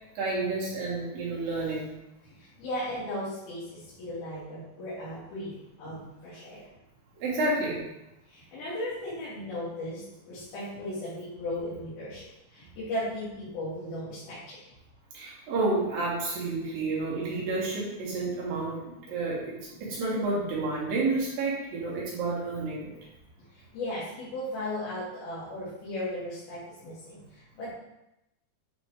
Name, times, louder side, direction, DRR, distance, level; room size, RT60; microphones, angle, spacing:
voice 1, 0.2-1.9 7.2-7.8 15.1-19.5 19.8-22.9, right 2 dB, 65° right, -5 dB, 3.5 m, -30 dB
voice 2, 2.3-6.6 8.3-14.6 23.5-27.7, left 1 dB, 75° left, -12 dB, 4.1 m, -36 dB
9.8 x 4.1 x 3.4 m, 0.88 s
omnidirectional pair, 4.4 m